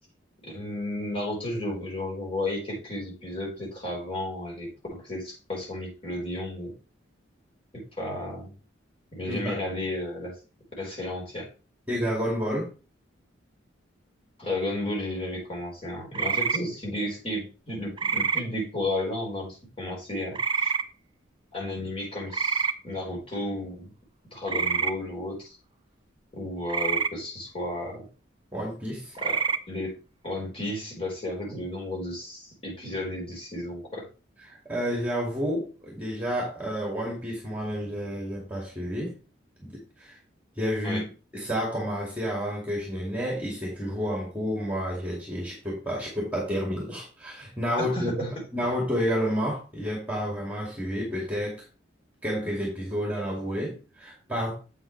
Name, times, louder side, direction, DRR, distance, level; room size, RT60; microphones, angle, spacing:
voice 1, 0.4-6.7 7.7-8.5 9.1-10.3 10.8-11.5 14.4-20.7 21.5-23.9 24.3-25.6 26.3-28.1 29.2-29.9 30.2-34.1 40.8-41.0 47.8-48.3, left 1 dB, 30° left, -2 dB, 4.5 m, -33 dB
voice 2, 9.3-9.6 11.9-12.7 28.5-29.1 34.5-39.1 39.6-40.2 40.6-41.0 41.3-51.6 52.2-54.6, equal, 10° right, -2 dB, 2.4 m, -30 dB
sound 1, 16.1-16.6 18.0-18.4 20.3-20.8 22.3-22.7 24.5-24.9 26.7-27.1 29.1-29.6, right 5 dB, 25° right, 0.5 m, -26 dB
8.5 x 7.7 x 3.3 m, 0.32 s
head